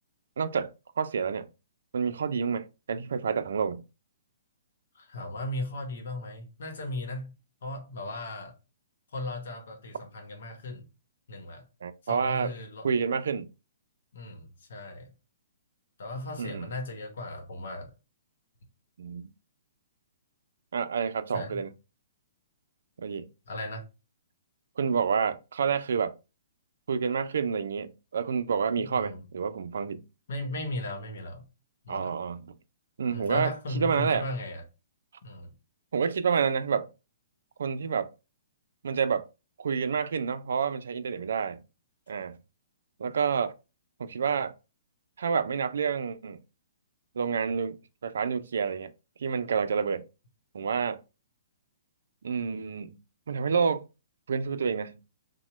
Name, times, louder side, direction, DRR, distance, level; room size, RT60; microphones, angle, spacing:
voice 1, 0.4-1.4 1.9-3.8 11.8-12.5 12.8-13.5 16.4-16.7 19.0-19.3 20.7-21.7 23.0-23.3 24.8-26.1 26.9-30.1 31.9-32.6 33.0-34.3 35.9-36.9 37.6-38.1 38.8-39.3 39.6-41.6 42.1-42.4 43.0-43.5 44.0-44.5 45.2-46.4 47.2-48.9 49.2-50.1 50.5-51.0 52.2-53.0 53.3-53.9 54.3-55.0, right 6 dB, 75° right, 0.4 m, -29 dB
voice 2, 4.9-7.3 7.6-8.6 9.1-10.9 11.3-11.7 12.0-12.9 14.1-15.1 16.0-17.9 21.3-21.6 23.5-23.9 28.8-29.2 30.3-31.4 31.8-32.1 33.1-34.6 35.2-35.5, left 2 dB, 70° left, 0.9 m, -37 dB
2.9 x 2.1 x 3.1 m
hypercardioid pair, 150°, 0 cm